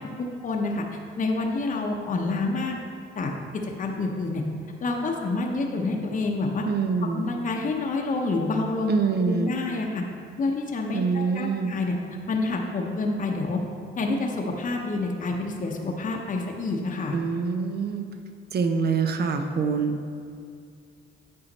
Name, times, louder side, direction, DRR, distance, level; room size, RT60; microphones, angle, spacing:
voice 1, 0.2-0.8 1.2-2.8 3.2-4.4 4.8-6.6 7.0-10.0 10.4-12.0 12.3-13.6 14.0-17.2, left 3 dB, 40° left, 1 dB, 0.9 m, -28 dB
voice 2, 6.7-7.3 8.9-9.6 10.9-11.7 17.1-18.1 18.5-19.9, right 5 dB, 55° right, 6 dB, 0.8 m, -25 dB
8.8 x 5.6 x 4.1 m, 2.4 s
cardioid pair, 90°, 20 cm